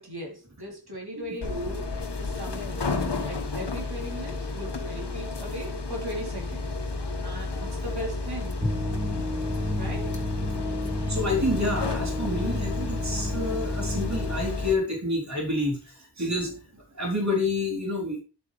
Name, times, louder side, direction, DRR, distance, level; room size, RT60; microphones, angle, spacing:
voice 1, 0.0-6.7 7.2-8.6 9.8-10.2, equal, 70° right, -1 dB, 4.1 m, -38 dB
sound 1, 1.4-14.7, left 3 dB, 90° left, 1.7 m, -31 dB
sound 2, 8.6-14.4, left 1 dB, 5° right, 1.9 m, -32 dB
voice 2, 11.1-18.2, left 2 dB, 45° right, -1 dB, 3.8 m, -29 dB
11.5 x 7.7 x 3.4 m, 0.32 s
wide cardioid pair, 60°, 40 cm